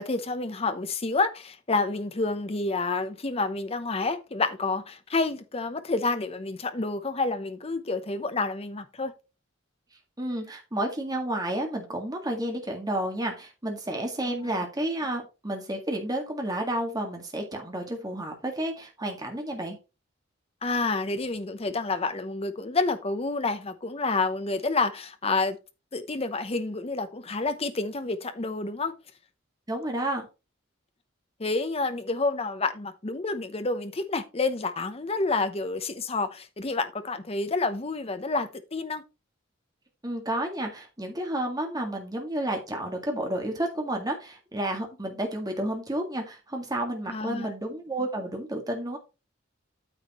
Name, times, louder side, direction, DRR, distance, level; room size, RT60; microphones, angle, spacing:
voice 1, 0.0-9.1 14.3-14.4 20.6-25.6 25.9-28.9 31.4-39.0 47.1-47.5, left 3 dB, 30° left, 0.8 m, -29 dB
voice 2, 10.2-19.8 29.7-30.3 40.0-49.0, right 1 dB, 20° right, 1.9 m, -31 dB
9.2 x 7.3 x 3.1 m
head